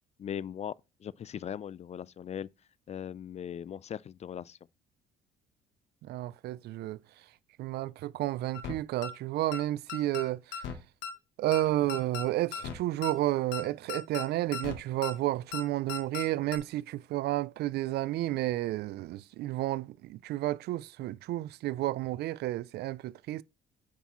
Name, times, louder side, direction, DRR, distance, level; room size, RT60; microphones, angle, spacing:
voice 1, 0.2-0.7 1.0-2.5 2.9-4.6, left 9 dB, 40° left, 0.4 m, -39 dB
voice 2, 6.0-7.0 7.6-10.6 11.4-23.4, right 15 dB, 65° right, 0.4 m, -31 dB
sound 1, 8.5-8.7 9.0-9.1 9.5-9.6 9.9-10.2 10.5-10.8 11.0-11.1 11.5-11.6 11.9-12.2 12.5-12.8 13.0-13.1 13.5-13.6 13.9-14.2 14.5-14.7 15.0-15.1 15.5-15.6 15.9-16.2 16.5-16.6, left 6 dB, 75° left, 1.3 m, -37 dB
8.3 x 5.7 x 3.0 m
supercardioid pair, 70°, 18 cm